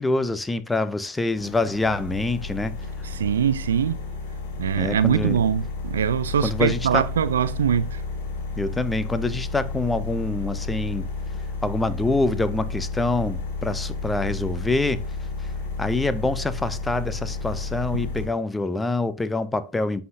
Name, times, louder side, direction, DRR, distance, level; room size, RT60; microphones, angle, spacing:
voice 1, 0.0-2.8 4.8-5.4 6.4-7.0 8.6-11.0 11.6-15.0 15.4-15.5 15.8-20.0, left 2 dB, 10° left, 0.8 m, -25 dB
sound 1, 1.3-18.3, left 3 dB, 60° left, 2.4 m, -32 dB
voice 2, 3.0-4.0 4.6-8.0 17.9-18.0, right 8 dB, 75° right, 0.5 m, -23 dB
11.0 x 5.7 x 2.7 m
figure-of-eight pair, 80°, 0 cm